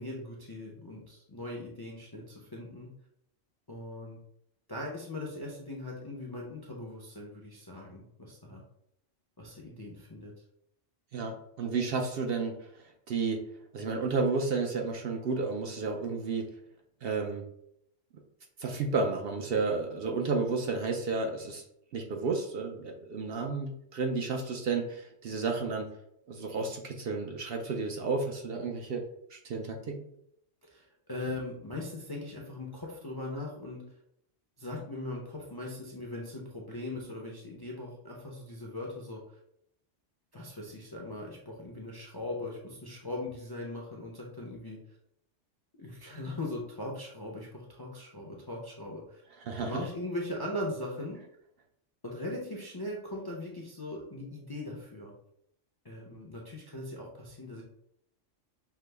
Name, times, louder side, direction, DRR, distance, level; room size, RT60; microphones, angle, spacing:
voice 1, 0.0-2.9 3.7-4.2 4.7-8.6 9.4-10.3 30.6-33.8 34.6-39.4 40.3-44.8 45.7-49.2 49.6-51.2 52.0-55.1 55.8-57.6, left 1 dB, 30° left, -2 dB, 0.4 m, -40 dB
voice 2, 11.1-12.6 13.1-13.4 13.7-16.5 17.0-17.5 18.6-21.6 21.9-25.9 26.3-29.0 29.3-30.1 49.5-49.8, right 4 dB, 65° right, 3 dB, 0.7 m, -32 dB
5.7 x 2.0 x 3.3 m, 0.75 s
omnidirectional pair, 1.3 m